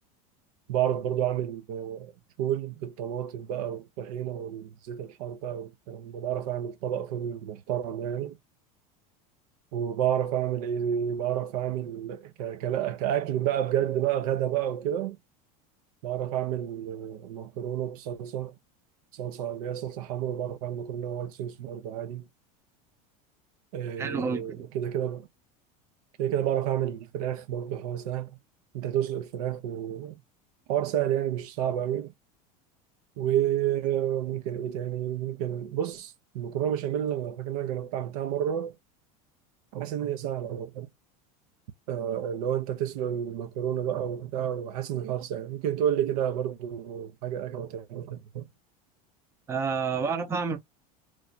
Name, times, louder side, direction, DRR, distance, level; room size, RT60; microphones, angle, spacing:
voice 1, 0.7-2.1 2.4-8.4 9.7-15.2 16.0-18.5 19.1-22.3 23.7-25.3 26.2-28.4 28.7-30.2 30.7-32.1 33.2-38.7 39.7-40.9 41.9-48.5, right 10 dB, 80° right, 0.5 m, -30 dB
voice 2, 24.0-24.7 49.5-50.6, right 5 dB, 15° right, 0.5 m, -29 dB
3.1 x 2.1 x 3.9 m
supercardioid pair, 150°, 19 cm